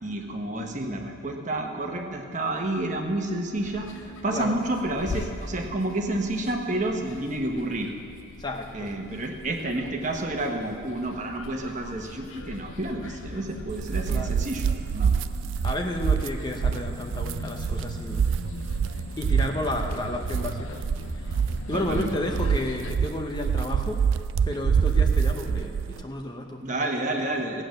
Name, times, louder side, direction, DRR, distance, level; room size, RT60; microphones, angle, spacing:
voice 1, 0.0-3.9 4.2-7.9 8.7-15.1 21.7-22.2 26.6-27.6, right 1 dB, 35° right, 2 dB, 1.2 m, -30 dB
sound 1, 3.5-22.9, left 2 dB, 65° left, 0.7 m, -40 dB
voice 2, 8.4-8.9 14.1-14.5 15.6-18.3 19.2-20.8 21.2-21.4 21.7-24.0 24.5-26.6, left 1 dB, 20° left, 2 dB, 0.7 m, -32 dB
sound 2, 13.7-26.0, right 6 dB, 60° right, 0.3 m, -26 dB
16.5 x 8.9 x 6.5 m, 2.3 s
head